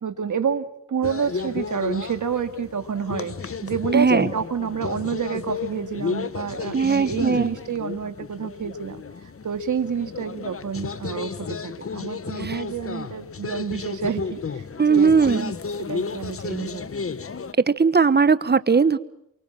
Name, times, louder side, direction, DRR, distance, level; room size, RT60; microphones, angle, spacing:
voice 1, 0.0-9.0 9.4-15.5 15.8-16.9, right 7 dB, 70° right, 8 dB, 2.2 m, -29 dB
sound 1, 1.0-17.5, left 5 dB, 45° left, 1.2 m, -33 dB
voice 2, 3.9-4.3 6.7-7.5 12.4-12.6 14.8-15.5 17.7-19.0, right 5 dB, 35° right, 15 dB, 1.2 m, -19 dB
28.5 x 24.0 x 7.5 m, 0.74 s
wide cardioid pair, 85°, 31 cm